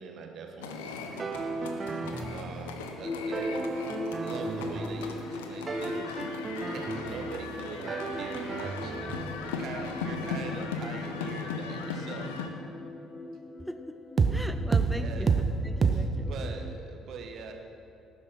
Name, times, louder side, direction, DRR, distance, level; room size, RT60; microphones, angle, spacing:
voice 1, 0.0-3.7 4.1-6.2 6.7-12.4 14.8-15.3 15.9-17.5, right 5 dB, 50° right, 4 dB, 1.7 m, -43 dB
sound 1, 0.6-12.5, left 5 dB, 70° left, 1.0 m, -38 dB
sound 2, 1.2-2.9 3.3-5.4 5.7-7.6 7.9-11.6 14.2-14.4 14.7-14.9 15.3-15.5 15.8-16.0, right 5 dB, 35° right, 1.0 m, -32 dB
sound 3, 3.0-16.8, left 2 dB, 25° left, 0.9 m, -40 dB
voice 2, 13.6-14.0 14.3-16.3, equal, ahead, 10 dB, 0.5 m, -40 dB
18.0 x 9.9 x 5.7 m, 2.6 s
figure-of-eight pair, 50°, 0 cm